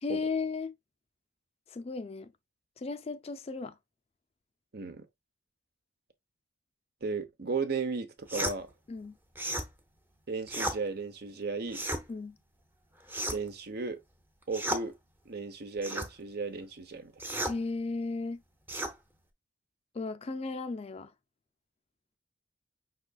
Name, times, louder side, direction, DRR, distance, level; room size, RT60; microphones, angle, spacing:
voice 1, 0.0-0.7 1.7-2.3 2.8-3.8 8.9-9.2 12.1-12.4 17.4-18.4 19.9-21.1, left 4 dB, 30° left, 0.4 m, -35 dB
voice 2, 4.7-5.1 7.0-8.7 10.3-11.8 13.3-14.0 14.5-14.9 15.3-17.1, right 4 dB, 55° right, 0.8 m, -35 dB
sound 1, 8.3-8.6 9.3-9.7 10.5-10.8 11.7-12.0 13.1-13.5 14.5-14.8 15.8-16.1 17.2-17.6 18.7-18.9, right 1 dB, 10° right, 0.7 m, -33 dB
5.5 x 3.9 x 2.3 m
head